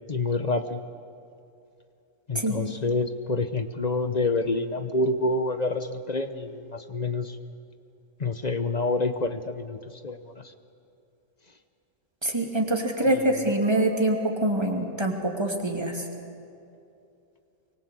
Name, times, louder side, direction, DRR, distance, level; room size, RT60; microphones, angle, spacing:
voice 1, 0.1-0.8 2.3-7.4 8.2-10.5 13.1-13.3, left 2 dB, 35° left, 10 dB, 0.9 m, -28 dB
voice 2, 12.2-16.1, right 1 dB, 15° right, 2 dB, 2.7 m, -25 dB
24.5 x 24.0 x 8.3 m, 2.6 s
omnidirectional pair, 1.6 m